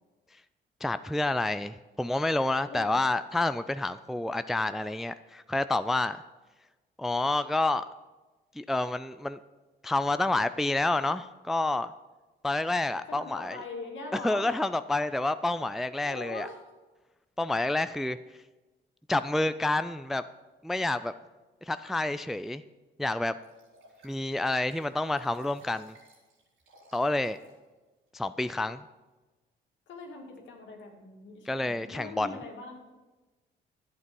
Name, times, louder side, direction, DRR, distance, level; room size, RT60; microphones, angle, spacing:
voice 1, 0.8-6.2 7.0-7.9 8.6-9.4 9.8-11.9 12.4-13.6 14.1-16.5 17.4-18.2 19.1-20.2 20.6-21.1 21.7-22.6 23.0-23.3 24.0-25.9 26.9-27.4 28.1-28.8 31.5-32.4, left 2 dB, ahead, 12 dB, 0.3 m, -29 dB
voice 2, 2.7-3.1 13.1-14.5 16.0-16.7 29.9-32.8, left 3 dB, 70° left, 1 dB, 2.3 m, -42 dB
Liquid, 23.4-27.6 28.1-28.2, right 1 dB, 90° right, 4.0 m, -60 dB
11.5 x 8.2 x 5.3 m, 1.2 s
cardioid pair, 90°, 20 cm